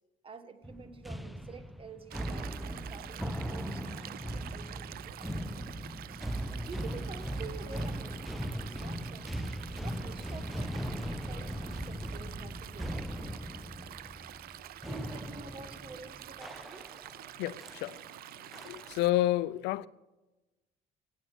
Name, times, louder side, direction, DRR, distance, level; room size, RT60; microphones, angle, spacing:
voice 1, 0.2-5.3 6.6-9.5 9.8-13.3 14.9-16.8, right 5 dB, 30° right, 1.6 m, -49 dB
sound 1, 0.6-17.2 17.6-17.9 18.5-19.1, equal, ahead, 0.6 m, -39 dB
Stream, 2.1-19.1, right 13 dB, 65° right, 0.5 m, -47 dB
voice 2, 17.4-18.0 18.7-19.9, left 15 dB, 90° left, 0.5 m, -29 dB
16.0 x 9.3 x 6.1 m
cardioid pair, 110°, 17 cm